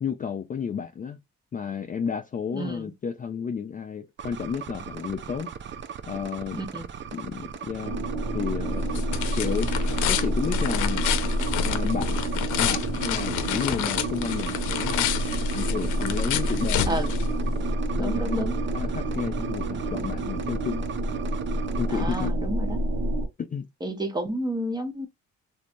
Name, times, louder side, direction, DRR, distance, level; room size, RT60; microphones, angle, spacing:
voice 1, 0.0-1.2 1.5-5.5 6.1-6.6 7.1-9.0 9.3-9.7 10.1-11.1 11.6-12.2 12.6-15.1 15.5-17.1 17.9-20.8 21.8-22.3 23.4-23.7, left 7 dB, 30° left, 0.4 m, -32 dB
voice 2, 2.5-2.9 6.6-6.8 16.9-17.1 18.0-18.6 21.9-22.8 23.8-25.1, right 1 dB, 15° right, 0.8 m, -31 dB
sound 1, 4.2-22.3, right 7 dB, 40° right, 0.5 m, -39 dB
sound 2, 7.8-23.3, right 1 dB, 70° right, 1.1 m, -28 dB
sound 3, 8.3-17.7, left 11 dB, 75° left, 0.6 m, -30 dB
3.1 x 2.6 x 2.6 m
cardioid pair, 90°, 30 cm